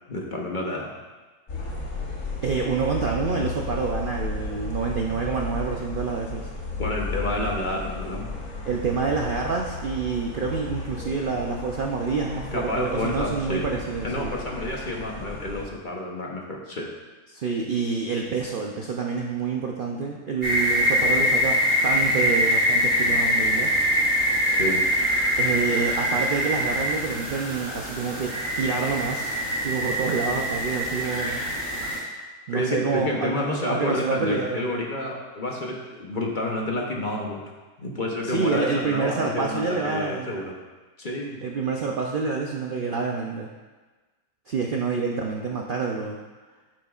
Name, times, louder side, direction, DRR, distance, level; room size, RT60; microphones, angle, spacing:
voice 1, 0.1-0.9 6.8-8.3 12.5-13.7 14.0-16.9 24.5-24.8 32.5-37.4 37.8-40.5 41.0-41.4, left 1 dB, 40° left, -1 dB, 0.9 m, -29 dB
sound 1, 1.5-15.6, left 2 dB, 55° left, 1.6 m, -34 dB
voice 2, 2.4-6.5 8.7-14.3 17.3-23.7 25.4-31.4 32.5-34.7 38.2-40.4 41.4-43.5 44.5-46.2, right 4 dB, 85° right, 0 dB, 0.4 m, -27 dB
sound 2, 20.4-32.0, equal, 45° right, 2.9 m, -24 dB
9.2 x 7.8 x 2.4 m, 1.3 s
omnidirectional pair, 1.7 m